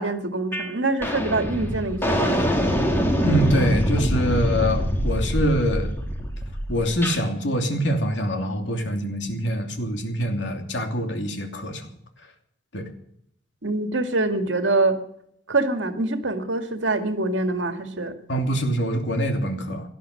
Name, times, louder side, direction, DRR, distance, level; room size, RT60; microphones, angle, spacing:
voice 1, 0.0-2.6 13.6-15.0 15.5-18.1 19.6-19.7, right 2 dB, 70° right, 6 dB, 2.1 m, -25 dB
sound 1, 0.5-0.7 1.0-7.2, equal, 10° left, 2.9 m, -24 dB
voice 2, 3.2-5.9 6.7-11.9 12.7-12.8 18.3-19.9, equal, 65° left, 4 dB, 2.9 m, -24 dB
17.5 x 11.5 x 6.7 m, 0.70 s
head